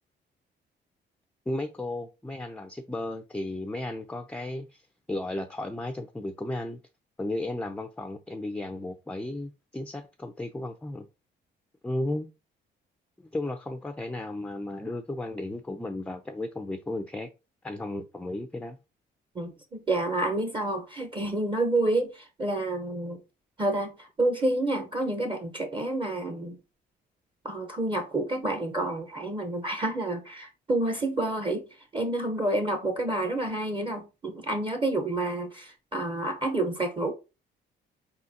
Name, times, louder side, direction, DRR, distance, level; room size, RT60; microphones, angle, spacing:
voice 1, 1.5-4.8 5.1-6.8 7.2-11.1 11.8-12.3 13.2-17.3 17.6-18.8, left 1 dB, 5° left, 0.4 m, -34 dB
voice 2, 19.3-23.2 23.6-26.6 27.4-31.6 31.9-37.1, right 2 dB, 25° right, 0.8 m, -29 dB
4.2 x 3.8 x 2.7 m
cardioid pair, 90°, 20 cm